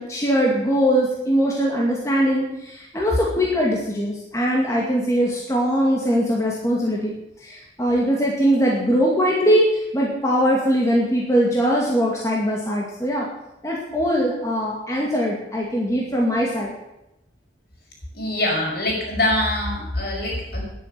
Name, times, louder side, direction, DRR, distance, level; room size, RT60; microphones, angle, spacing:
voice 1, 0.0-7.1 7.4-13.3 13.6-16.7, equal, 15° left, -3 dB, 2.3 m, -21 dB
voice 2, 18.1-20.6, left 1 dB, 55° left, 0 dB, 5.5 m, -24 dB
10.5 x 10.5 x 9.5 m, 0.90 s
head